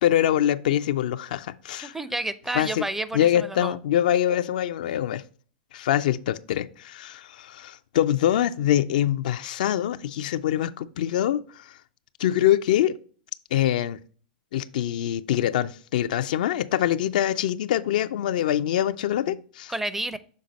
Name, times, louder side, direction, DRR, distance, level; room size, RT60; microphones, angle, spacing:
voice 1, 0.0-2.0 2.5-2.9 3.1-5.2 5.7-11.8 12.2-13.0 13.5-14.0 14.5-19.7, left 11 dB, 65° left, 0.4 m, -24 dB
voice 2, 1.8-3.3 3.6-3.7 19.7-20.2, right 2 dB, 5° right, 0.4 m, -30 dB
6.4 x 3.8 x 4.1 m
hypercardioid pair, 105°, 5 cm